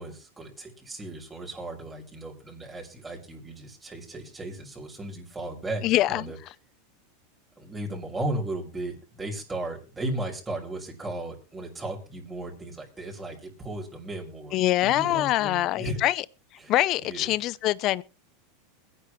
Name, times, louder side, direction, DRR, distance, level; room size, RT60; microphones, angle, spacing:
voice 1, 0.0-6.4 7.6-16.0 16.6-16.7 17.0-17.3, right 1 dB, 10° right, 6.5 m, -36 dB
voice 2, 5.8-6.3 14.5-16.2 16.7-18.0, left 15 dB, 45° left, 0.7 m, -24 dB
22.0 x 10.0 x 3.2 m
supercardioid pair, 125°, 0 cm